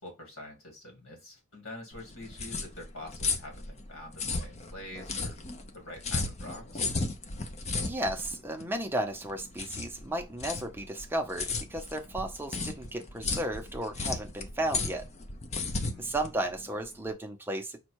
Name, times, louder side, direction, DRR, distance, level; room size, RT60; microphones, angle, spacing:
voice 1, 0.0-5.4 5.7-6.9 15.7-16.1, left 1 dB, 85° left, 1.8 m, -46 dB
sound 1, 1.9-17.1, left 3 dB, 30° left, 0.6 m, -35 dB
voice 2, 7.8-15.0 16.0-17.8, right 1 dB, 10° right, 0.6 m, -34 dB
5.3 x 2.2 x 4.5 m
head